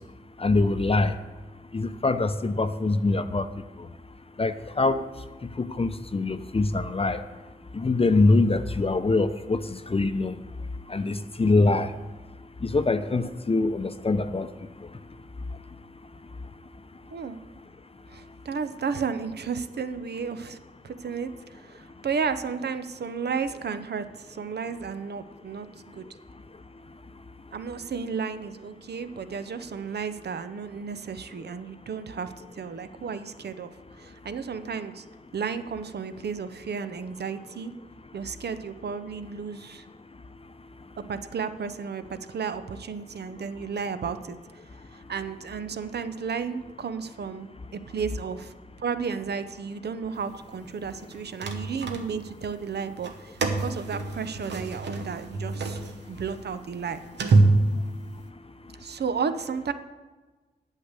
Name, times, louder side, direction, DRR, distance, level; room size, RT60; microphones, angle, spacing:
voice 1, 0.4-1.1 1.7-3.5 4.4-5.0 5.6-7.2 7.7-10.3 10.9-11.9 12.6-14.5, left 3 dB, 35° left, 10 dB, 0.6 m, -24 dB
voice 2, 18.1-20.6 20.8-26.1 27.5-35.0 35.3-37.7 38.1-39.9 41.1-44.4 44.9-48.5 48.8-55.8 56.1-57.0 58.8-59.7, right 6 dB, 70° right, 11 dB, 0.7 m, -33 dB
sound 1, 51.0-52.5 52.9-58.3, right 2 dB, 85° right, 1.1 m, -26 dB
8.4 x 6.6 x 8.1 m, 1.3 s
cardioid pair, 50°, 17 cm